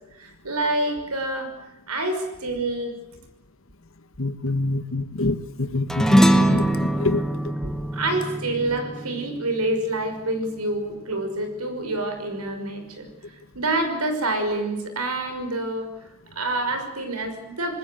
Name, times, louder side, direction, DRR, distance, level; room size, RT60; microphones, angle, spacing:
voice 1, 0.1-1.5 1.9-3.0 7.6-15.9 16.3-17.8, right 2 dB, 90° right, 7 dB, 5.8 m, -27 dB
voice 2, 4.2-7.2, left 2 dB, 60° left, 12 dB, 1.5 m, -26 dB
sound 1, 5.9-10.6, right 1 dB, ahead, 1.4 m, -22 dB
26.5 x 20.0 x 7.9 m, 0.95 s
head